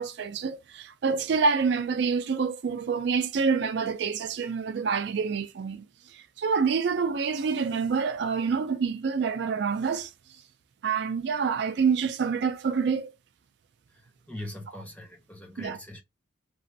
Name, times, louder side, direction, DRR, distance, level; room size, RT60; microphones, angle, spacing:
voice 1, 0.0-10.1 10.8-13.1 15.6-15.8, right 5 dB, 60° right, 0.4 m, -27 dB
voice 2, 13.9-16.0, left 1 dB, 5° left, 0.6 m, -42 dB
3.1 x 2.4 x 2.6 m
head